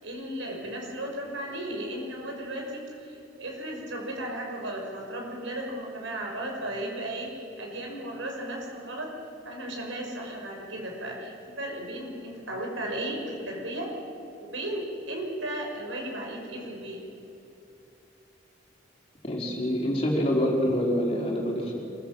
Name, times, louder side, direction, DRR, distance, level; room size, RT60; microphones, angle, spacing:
voice 1, 0.0-9.1 9.4-13.9 14.4-17.0, right 1 dB, 85° right, 0 dB, 5.6 m, -35 dB
voice 2, 19.2-21.8, equal, 30° left, -2 dB, 4.2 m, -26 dB
26.0 x 16.0 x 7.6 m, 2.8 s
head